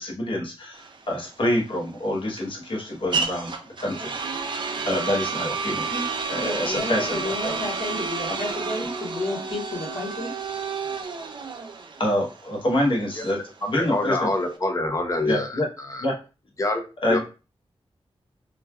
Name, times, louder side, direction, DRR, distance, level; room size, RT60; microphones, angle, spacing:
voice 1, 0.0-4.2 4.8-5.9 6.3-7.5 12.0-13.4 13.7-14.3 15.2-15.7 16.0-16.1 17.0-17.2, left 1 dB, 55° left, -1 dB, 0.9 m, -26 dB
sound 1, 0.7-14.6, right 4 dB, 50° right, 0.4 m, -31 dB
voice 2, 6.3-10.3, left 2 dB, 70° left, -7 dB, 1.3 m, -31 dB
voice 3, 13.6-15.6 15.9-16.0 16.6-16.8 17.1-17.2, left 2 dB, 30° left, 5 dB, 0.6 m, -25 dB
3.1 x 2.2 x 2.2 m, 0.31 s
wide cardioid pair, 100°, 10 cm